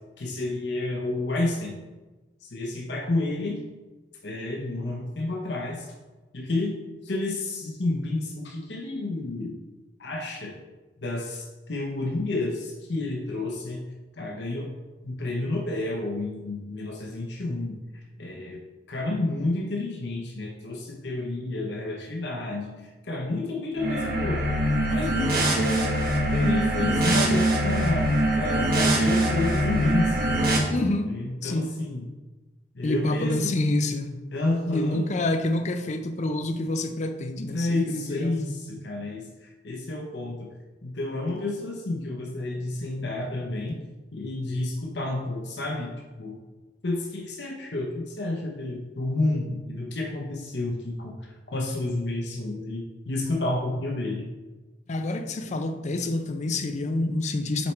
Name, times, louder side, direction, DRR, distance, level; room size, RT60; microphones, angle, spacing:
voice 1, 0.2-1.7 2.4-3.6 4.2-5.9 6.3-6.8 7.0-9.6 10.0-10.5 11.0-13.8 14.2-14.7 15.0-17.8 18.2-24.5 24.9-30.2 31.1-32.0 32.7-33.6 34.3-35.0 37.5-40.5 40.8-43.8 44.1-45.9 46.2-46.4 46.8-54.2, left 2 dB, 80° left, 0 dB, 0.9 m, -30 dB
sound 1, 23.8-30.6, right 1 dB, 60° right, 1.3 m, -23 dB
voice 2, 30.7-31.1 31.4-31.7 32.8-34.2 34.7-38.6 54.9-57.7, left 2 dB, 40° left, 8 dB, 0.5 m, -27 dB
7.1 x 4.4 x 3.2 m, 1.2 s
head